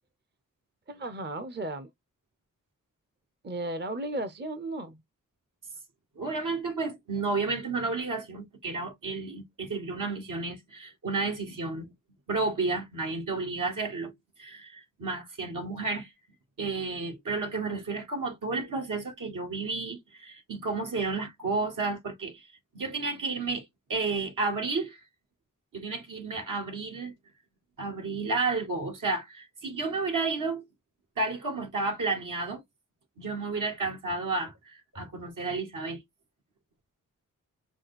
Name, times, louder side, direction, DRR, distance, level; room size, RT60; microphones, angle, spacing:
voice 1, 0.9-1.9 3.4-5.0, right 2 dB, 35° right, 0.7 m, -35 dB
voice 2, 6.2-11.9 12.3-14.1 14.4-16.1 16.6-22.5 22.7-25.0 25.7-27.1 27.8-30.6 31.2-32.6 33.2-36.0, right 3 dB, 75° right, 2.0 m, -32 dB
4.8 x 2.4 x 4.1 m
cardioid pair, 60°, 32 cm